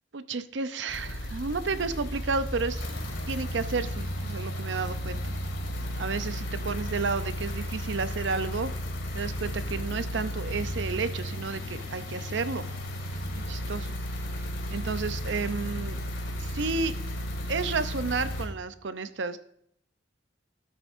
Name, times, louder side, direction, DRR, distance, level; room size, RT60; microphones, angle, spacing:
voice 1, 0.1-2.9 3.3-5.3 6.0-8.7 9.1-12.7 13.3-13.9 14.7-16.0 16.4-16.9 17.5-19.4, right 4 dB, 65° right, 12 dB, 0.6 m, -31 dB
sound 1, 0.9-18.5, equal, 85° left, 2.1 m, -34 dB
15.5 x 8.6 x 2.6 m, 0.71 s
head